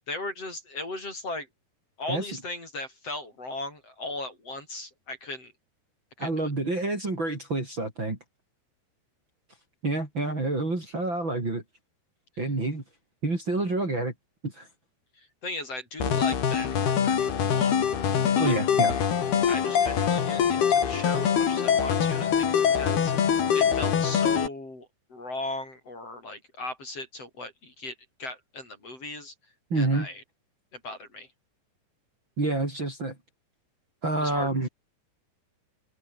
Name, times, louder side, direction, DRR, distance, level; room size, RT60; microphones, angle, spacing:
voice 1, 0.1-1.5 2.0-5.5 6.2-6.5 15.2-17.7 18.4-18.5 19.5-29.3 29.7-30.2 30.7-31.3 34.2-34.7, left 2 dB, 35° left, 8.4 m, -37 dB
voice 2, 6.2-8.2 9.8-11.6 12.4-12.8 13.2-14.1 14.4-14.7 18.4-18.9 29.7-30.1 32.4-33.2 34.0-34.7, right 2 dB, 25° right, 5.5 m, -28 dB
sound 1, 16.0-24.5, left 8 dB, 65° left, 5.2 m, -24 dB
omnidirectional pair, 4.9 m